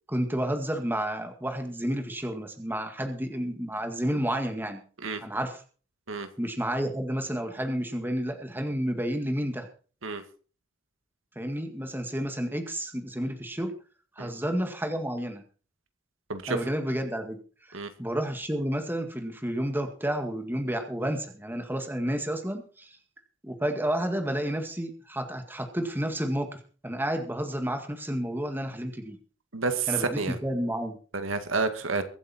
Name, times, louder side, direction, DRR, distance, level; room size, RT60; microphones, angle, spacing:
voice 1, 0.1-4.8 5.2-5.6 6.4-9.7 11.4-13.7 14.2-15.4 16.5-17.4 17.7-23.0 23.4-29.2 29.9-31.0, equal, 10° right, 5 dB, 2.0 m, -31 dB
voice 2, 16.3-16.7 17.7-17.9 29.5-30.4 31.1-32.0, right 4 dB, 80° right, 8 dB, 2.0 m, -29 dB
23.5 x 8.2 x 4.4 m, 0.39 s
head